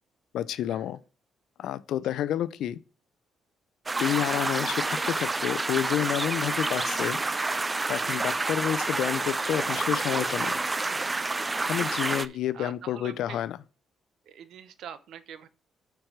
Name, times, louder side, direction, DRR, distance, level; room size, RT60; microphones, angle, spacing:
voice 1, 0.3-1.0 1.6-2.8 4.0-7.2 7.9-10.6 11.7-13.6, left 11 dB, 80° left, 0.5 m, -29 dB
sound 1, 3.9-12.3, right 3 dB, 20° right, 0.4 m, -29 dB
voice 2, 12.0-13.5 14.2-15.5, right 9 dB, 75° right, 0.8 m, -45 dB
8.8 x 4.7 x 4.7 m
cardioid pair, 90°, 0 cm